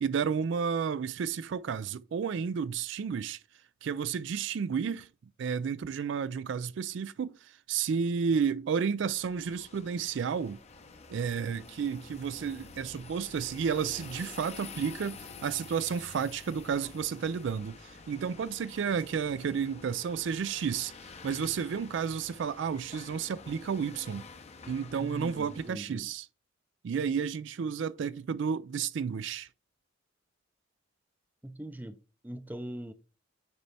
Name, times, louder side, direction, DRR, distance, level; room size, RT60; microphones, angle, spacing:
voice 1, 0.0-3.4 3.8-5.1 5.4-10.6 11.1-24.3 24.7-26.2 26.8-29.5, right 6 dB, 65° right, 0.3 m, -32 dB
sound 1, 9.1-25.7, left 4 dB, 35° left, 0.7 m, -49 dB
voice 2, 25.0-26.1 31.4-32.0 32.2-32.9, right 1 dB, 10° right, 0.5 m, -41 dB
9.3 x 4.2 x 3.3 m
head